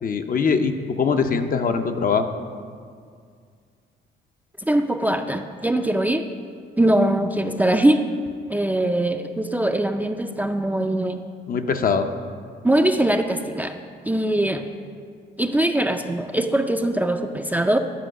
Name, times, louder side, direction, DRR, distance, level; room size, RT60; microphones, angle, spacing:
voice 1, 0.0-2.3 11.5-12.1, left 5 dB, 45° left, 7 dB, 0.6 m, -22 dB
voice 2, 4.7-6.2 6.8-8.0 8.5-11.2 12.6-13.8 14.0-14.7 15.4-17.8, right 1 dB, 10° right, 5 dB, 0.4 m, -21 dB
10.0 x 4.6 x 6.3 m, 2.1 s
cardioid pair, 90°, 20 cm